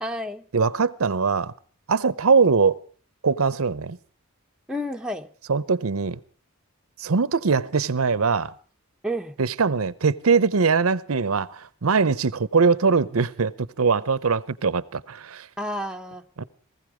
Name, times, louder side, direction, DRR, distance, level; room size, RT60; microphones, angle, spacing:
voice 1, 0.0-0.5 4.7-5.3 9.0-9.3 15.6-16.2, equal, 5° right, 0.9 m, -30 dB
voice 2, 0.5-1.5 1.9-2.8 3.2-4.0 5.5-6.2 7.0-8.5 9.4-15.5 16.4-16.5, right 5 dB, 80° right, 0.7 m, -22 dB
19.5 x 15.0 x 5.0 m
head